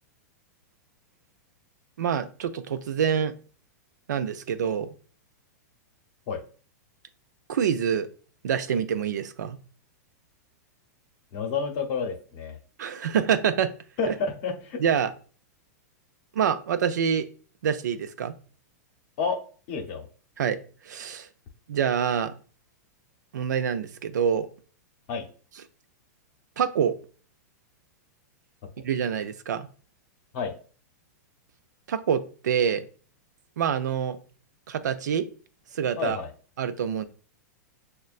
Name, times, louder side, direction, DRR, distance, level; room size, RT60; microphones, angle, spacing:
voice 1, 2.0-3.3 4.1-4.9 7.5-8.1 8.4-9.6 12.8-13.7 14.1-14.2 14.8-15.1 16.3-17.2 17.6-18.3 20.4-20.6 20.9-21.3 21.7-22.3 23.3-24.5 26.6-26.9 28.8-29.7 31.9-32.8 33.6-34.2 34.7-35.3 35.7-36.2 36.6-37.0, right 8 dB, 90° right, 10 dB, 0.5 m, -26 dB
voice 2, 11.3-12.6 14.0-14.8 19.2-19.4 19.7-20.1 25.1-25.3 30.3-30.5 36.0-36.3, left 5 dB, 45° left, 4 dB, 0.8 m, -29 dB
6.3 x 2.2 x 2.4 m, 0.41 s
supercardioid pair, 145°, 9 cm